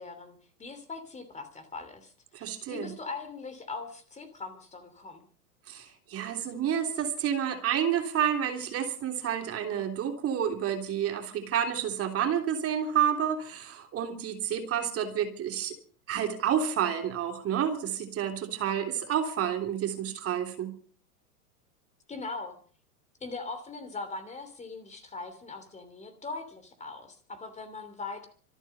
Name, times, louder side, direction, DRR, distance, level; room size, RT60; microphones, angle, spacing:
voice 1, 0.0-5.2 22.1-22.6 23.2-28.3, left 3 dB, 15° left, 8 dB, 3.0 m, -41 dB
voice 2, 2.3-2.9 5.7-15.7 16.1-20.7, right 9 dB, 30° right, 4 dB, 3.4 m, -29 dB
26.0 x 9.0 x 5.4 m, 0.43 s
hypercardioid pair, 100°, 46 cm